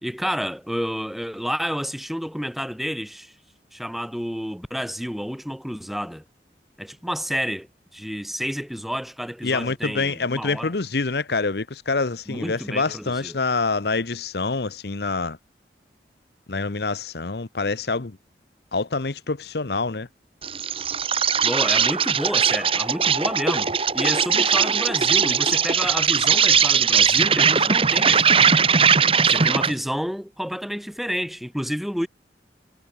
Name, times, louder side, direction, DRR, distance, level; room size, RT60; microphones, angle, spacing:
voice 1, 0.0-3.3 3.7-6.2 6.8-10.7 12.3-13.3 21.4-28.6 29.2-32.1, equal, ahead, 1.7 m, -30 dB
voice 2, 9.4-15.4 16.5-18.2 18.7-20.1, left 3 dB, 65° left, 0.9 m, -26 dB
Insect, 20.4-29.8, right 6 dB, 30° right, 1.4 m, -19 dB
head